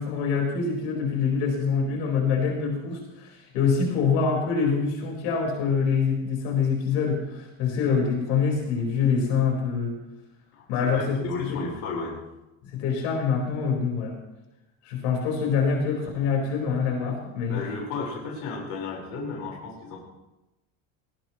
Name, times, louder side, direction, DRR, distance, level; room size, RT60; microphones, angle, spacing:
voice 1, 0.0-10.0 10.7-11.6 12.7-14.2 14.8-17.6, left 5 dB, 80° left, 0 dB, 4.8 m, -25 dB
voice 2, 10.5-12.2 17.5-20.0, left 4 dB, 55° left, -2 dB, 4.7 m, -34 dB
19.0 x 17.0 x 3.1 m, 0.97 s
cardioid pair, 170°, 34 cm